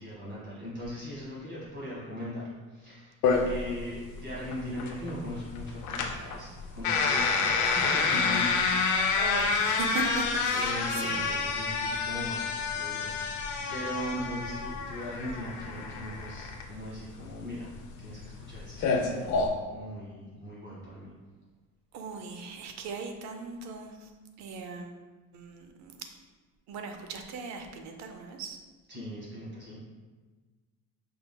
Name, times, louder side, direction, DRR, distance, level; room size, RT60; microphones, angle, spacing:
voice 1, 0.0-3.2 3.4-9.2 10.5-19.3 19.7-21.1 28.9-29.8, equal, 30° right, -8 dB, 1.4 m, -39 dB
sound 1, 3.2-19.5, left 4 dB, 60° left, 0.5 m, -29 dB
voice 2, 9.2-11.2 21.9-24.1 24.4-25.0 25.3-26.1 26.7-28.6, right 4 dB, 55° right, 5 dB, 0.5 m, -38 dB
5.5 x 3.7 x 2.2 m, 1.3 s
cardioid pair, 165°, 34 cm